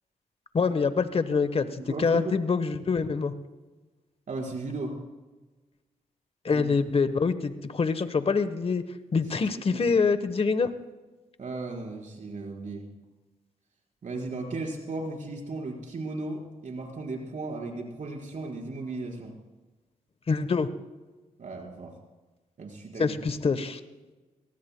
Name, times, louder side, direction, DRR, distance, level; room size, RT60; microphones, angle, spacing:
voice 1, 0.5-3.3 6.4-8.8 9.1-10.7 20.3-20.7 23.0-23.8, left 5 dB, 40° left, 11 dB, 1.1 m, -25 dB
voice 2, 1.8-2.3 4.3-4.9 6.5-6.7 9.7-9.9 11.4-12.9 14.0-19.3 21.4-21.9 22.6-23.1, right 3 dB, 60° right, 0 dB, 4.5 m, -36 dB
23.0 x 18.5 x 2.2 m, 1.2 s
cardioid pair, 60°, 15 cm